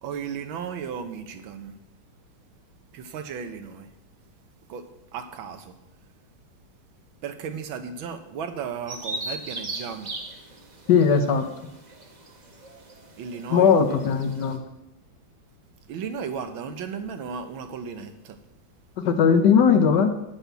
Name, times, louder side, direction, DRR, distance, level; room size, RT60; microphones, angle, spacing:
voice 1, 0.0-1.7 2.9-3.9 4.7-4.9 5.1-5.7 7.2-10.1 13.2-13.7 15.9-18.4, right 6 dB, 80° right, 8 dB, 1.7 m, -35 dB
Bird vocalization bird call bird song, 8.9-14.6, right 2 dB, 35° right, 0.7 m, -38 dB
voice 2, 10.9-11.4 13.5-14.6 19.0-20.1, left 6 dB, 65° left, 8 dB, 1.3 m, -18 dB
11.5 x 4.2 x 8.1 m, 0.87 s
omnidirectional pair, 2.2 m